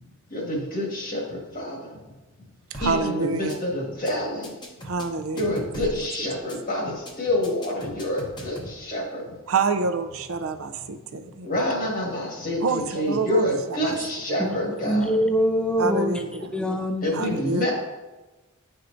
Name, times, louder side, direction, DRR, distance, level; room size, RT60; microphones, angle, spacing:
voice 1, 0.3-1.8 2.8-4.5 5.3-9.2 11.4-15.0 17.0-17.7, left 1 dB, 40° left, 1.6 m, -27 dB
sound 1, 2.7-3.0 3.3-3.6 3.9-4.1 4.4-6.0 6.3-6.6 6.9-7.1 7.4-8.7, left 1 dB, 20° left, 0.8 m, -38 dB
voice 2, 2.7-3.6 4.8-5.9 6.2-6.3 9.5-11.7 12.6-14.5 14.8-15.0 15.8-16.5 17.1-17.7, right 4 dB, 75° right, 0.5 m, -28 dB
voice 3, 14.4-16.2 16.5-17.3, equal, 5° left, 0.5 m, -24 dB
9.6 x 4.5 x 2.6 m
head